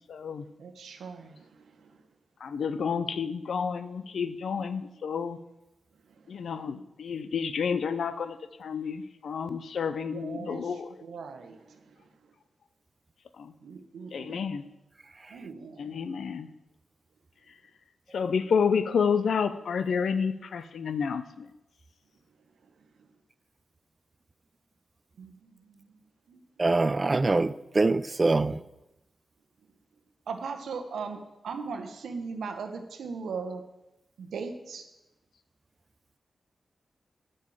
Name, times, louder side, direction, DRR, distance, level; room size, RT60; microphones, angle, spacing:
voice 1, 0.1-0.4 2.4-5.4 6.3-10.9 13.4-13.5 14.1-14.6 15.8-16.5 18.1-21.5, left 6 dB, 80° left, 0.6 m, -30 dB
voice 2, 0.6-2.0 6.1-6.7 10.1-12.3 13.6-14.4 15.3-16.0 22.6-22.7 25.2-25.9 26.3-26.7 30.3-33.6 34.2-34.8, right 5 dB, 85° right, 0.9 m, -39 dB
voice 3, 26.6-28.6, right 3 dB, 40° right, 0.4 m, -24 dB
7.7 x 5.3 x 7.4 m
cardioid pair, 45°, 0 cm